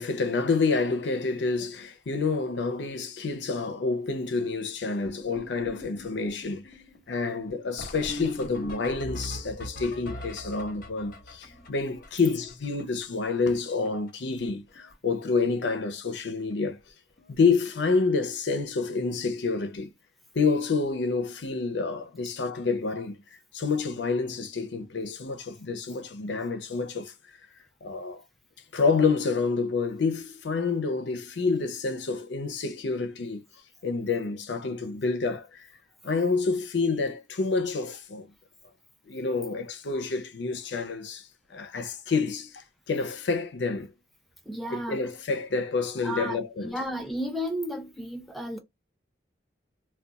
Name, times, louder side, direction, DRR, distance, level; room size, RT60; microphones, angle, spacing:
voice 1, 0.0-6.7 7.1-16.8 17.3-19.9 20.3-23.2 23.5-27.1 27.8-28.2 28.7-33.4 33.8-35.7 36.0-38.3 39.1-43.9 44.7-46.7, left 4 dB, 80° left, 0.5 m, -28 dB
sound 1, 5.0-13.3 13.5-13.6 13.8-14.1 14.4-14.9 15.2-15.5 16.3-16.4 16.8-16.9 17.2-17.3 19.6-19.7 22.0-22.1, left 1 dB, 50° left, 0.8 m, -41 dB
voice 2, 44.5-45.0 46.0-48.6, equal, ahead, 0.4 m, -33 dB
2.3 x 2.3 x 3.9 m
head